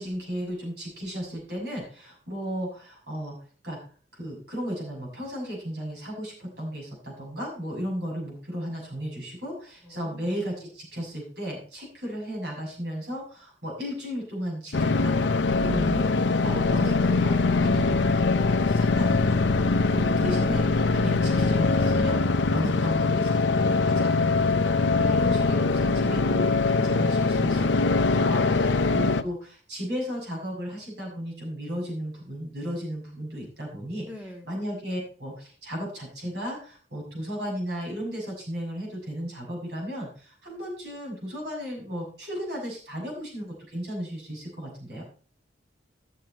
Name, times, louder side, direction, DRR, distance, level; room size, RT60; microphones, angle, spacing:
voice 1, 0.0-3.3 3.6-3.8 4.1-15.1 15.6-18.1 18.4-34.1 34.4-45.0, equal, 60° right, -2 dB, 6.8 m, -35 dB
voice 2, 9.8-10.4 24.9-25.3 28.5-28.8 34.0-34.5, right 1 dB, 5° right, 2 dB, 1.8 m, -41 dB
sound 1, 14.7-29.2, left 3 dB, 80° left, 0.6 m, -22 dB
13.5 x 7.7 x 4.3 m, 0.39 s
head